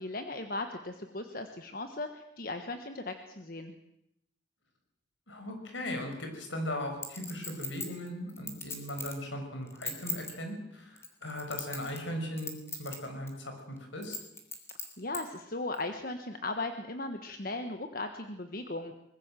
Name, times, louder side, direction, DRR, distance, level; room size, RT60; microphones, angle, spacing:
voice 1, 0.0-3.8 15.0-19.0, left 2 dB, 45° left, 7 dB, 1.4 m, -37 dB
voice 2, 5.3-14.2, left 1 dB, 75° left, 4 dB, 5.8 m, -38 dB
Chink clink, 7.0-9.2 9.7-10.3 11.0-12.1 12.4-13.0 13.3-13.4 14.0-15.2 15.7-15.8, left 3 dB, 15° left, 3.2 m, -38 dB
23.5 x 20.5 x 7.5 m, 0.81 s
head